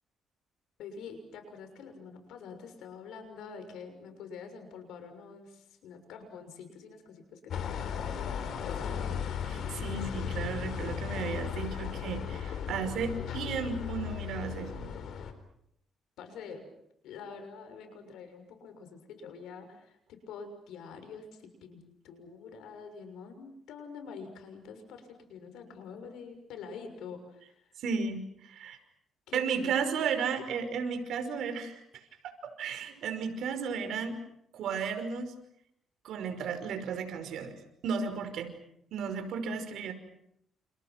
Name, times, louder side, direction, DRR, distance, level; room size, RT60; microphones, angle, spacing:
voice 1, 0.8-9.2 16.2-16.7 17.0-27.7 29.3-30.1, left 5 dB, 90° left, 7 dB, 6.6 m, -46 dB
sound 1, 7.5-15.3, left 8 dB, 65° left, 4.2 m, -36 dB
voice 2, 9.5-14.9 27.8-28.8 29.3-34.2 34.5-35.3 36.0-37.5 37.8-38.5 38.9-39.9, right 6 dB, 75° right, 7 dB, 5.5 m, -34 dB
30.0 x 30.0 x 6.1 m, 0.74 s
cardioid pair, 120°, 0 cm